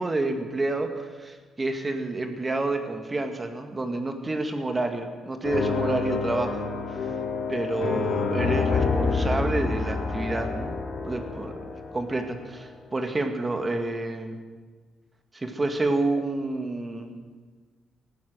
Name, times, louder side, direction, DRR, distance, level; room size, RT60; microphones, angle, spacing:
voice 1, 0.0-6.6 6.9-7.1 7.5-10.8 11.0-11.5 11.9-14.4 15.3-17.2, right 2 dB, 25° right, 5 dB, 1.9 m, -29 dB
sound 1, 5.4-12.5, left 4 dB, 70° left, 3.1 m, -28 dB
17.0 x 13.5 x 6.3 m, 1.4 s
cardioid pair, 90°, 0 cm